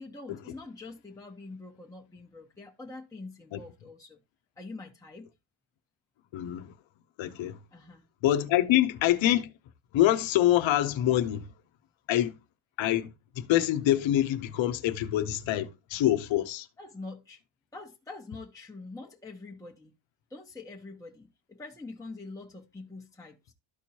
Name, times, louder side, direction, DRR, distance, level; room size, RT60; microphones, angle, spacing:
voice 1, 0.0-4.2 4.6-5.3 7.7-8.0 16.8-17.4 17.7-19.9 20.3-23.5, left 3 dB, 5° left, 1.0 m, -45 dB
voice 2, 6.3-6.7 7.2-7.6 8.2-9.5 9.9-11.5 12.1-12.3 12.8-13.1 13.4-16.7, left 13 dB, 80° left, 0.9 m, -25 dB
13.0 x 4.5 x 2.9 m
cardioid pair, 115°, 46 cm